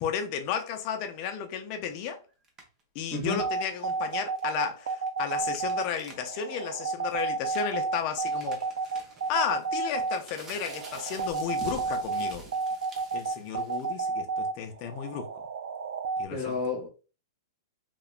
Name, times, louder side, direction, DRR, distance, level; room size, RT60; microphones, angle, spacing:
voice 1, 0.0-2.2 2.9-8.6 9.3-12.5 13.1-15.3 16.2-16.5, left 7 dB, 35° left, 0.4 m, -33 dB
sound 1, 2.4-2.8 3.7-6.3 6.6-6.7 7.1-14.1, right 3 dB, 20° right, 0.5 m, -48 dB
sound 2, 3.3-16.3, right 4 dB, 90° right, 0.3 m, -31 dB
voice 2, 16.3-16.9, left 3 dB, 10° left, 0.8 m, -30 dB
2.9 x 2.1 x 2.3 m
hypercardioid pair, 155°, 2 cm